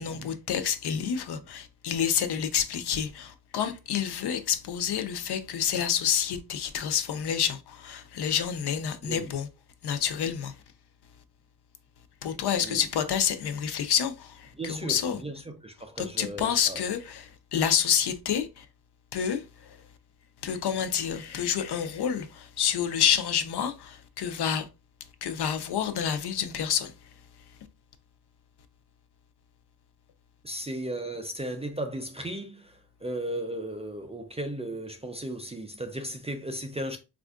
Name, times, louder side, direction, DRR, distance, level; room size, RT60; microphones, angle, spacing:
voice 1, 0.0-9.5 9.8-10.5 12.2-15.2 16.0-18.7 19.1-19.8 20.4-24.7 25.2-26.9, left 8 dB, 70° left, 0.6 m, -28 dB
voice 2, 14.6-16.8 30.4-37.0, right 1 dB, 15° right, 0.3 m, -36 dB
4.2 x 2.5 x 2.3 m
wide cardioid pair, 135°, 41 cm